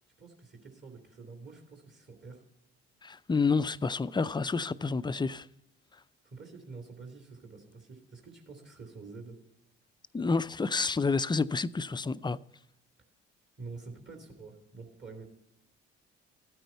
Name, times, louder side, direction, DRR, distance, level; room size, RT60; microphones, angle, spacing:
voice 1, 0.2-2.4 6.2-9.4 13.6-15.3, right 4 dB, 35° right, 2.8 m, -47 dB
voice 2, 3.0-5.5 10.1-12.4, left 4 dB, 15° left, 0.4 m, -29 dB
14.0 x 9.1 x 4.4 m
hypercardioid pair, 55°, 31 cm